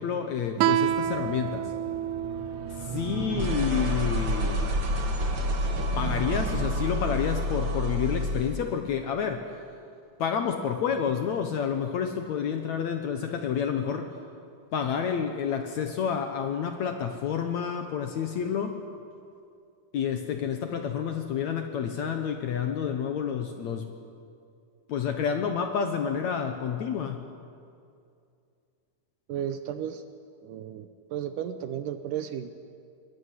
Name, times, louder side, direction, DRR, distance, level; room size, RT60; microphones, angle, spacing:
voice 1, 0.0-1.7 2.7-4.6 6.0-9.5 10.2-14.1 14.7-18.8 19.9-23.9 24.9-27.2, left 7 dB, 65° left, 6 dB, 1.9 m, -29 dB
Guitar, 0.6-3.8, right 12 dB, 90° right, 2.7 m, -29 dB
sound 1, 0.8-8.6, equal, 40° right, 2.1 m, -30 dB
voice 2, 29.3-30.0 30.4-32.5, right 10 dB, 75° right, 10 dB, 2.1 m, -34 dB
22.0 x 20.5 x 9.6 m, 2.4 s
omnidirectional pair, 4.4 m